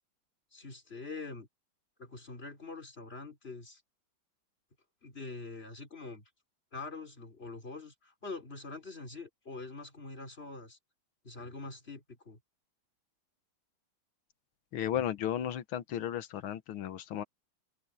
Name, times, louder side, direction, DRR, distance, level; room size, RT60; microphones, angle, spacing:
voice 1, 0.5-1.5 2.0-3.8 5.0-6.2 6.7-10.8 11.2-12.4, left 3 dB, 30° left, 4.1 m, -44 dB
voice 2, 14.7-17.2, left 10 dB, 85° left, 1.9 m, -34 dB
open air
omnidirectional pair, 2.2 m